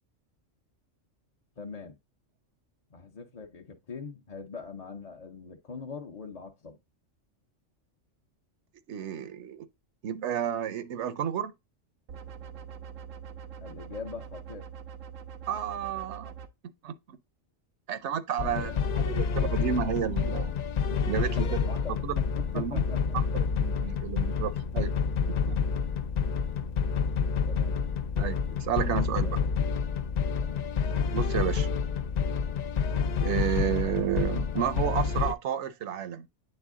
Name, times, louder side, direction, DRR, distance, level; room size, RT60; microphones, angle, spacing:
voice 1, 1.6-2.0 2.9-6.8 13.6-14.7 18.4-19.2 20.3-20.4 20.9-21.0 21.3-23.2 27.5-27.8 28.8-29.5 30.4-30.7, left 5 dB, 40° left, 0.7 m, -43 dB
voice 2, 8.9-9.7 10.0-11.5 15.5-16.3 16.6-17.2 17.9-20.6 21.0-21.6 22.0-22.2 22.5-22.8 23.3-24.9 25.5-25.6 28.2-29.4 31.1-31.7 33.2-36.3, right 9 dB, 70° right, 1.0 m, -31 dB
sound 1, 12.1-16.5, right 7 dB, 90° right, 1.1 m, -44 dB
sound 2, 18.4-35.3, left 6 dB, 60° left, 0.4 m, -28 dB
9.0 x 3.3 x 3.6 m
omnidirectional pair, 1.3 m